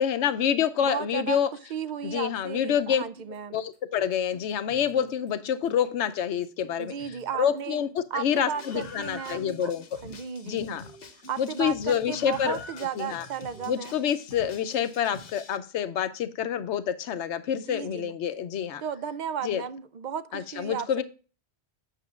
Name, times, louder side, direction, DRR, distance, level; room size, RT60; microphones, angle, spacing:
voice 1, 0.0-1.5 2.0-3.0 3.5-6.9 7.4-9.8 10.4-10.8 11.4-12.6 13.0-13.3 13.7-18.8 19.4-19.6 20.3-21.0, left 8 dB, 90° left, 1.0 m, -27 dB
voice 2, 0.8-1.4 1.7-3.6 6.8-7.8 8.1-9.7 10.0-10.8 11.3-14.0 17.6-18.1 18.8-21.0, right 8 dB, 55° right, 0.5 m, -34 dB
sound 1, 2.8-15.1, right 3 dB, 75° right, 4.6 m, -53 dB
Screaming, 8.6-15.6, left 3 dB, 60° left, 1.0 m, -46 dB
8.3 x 6.8 x 2.4 m
omnidirectional pair, 1.1 m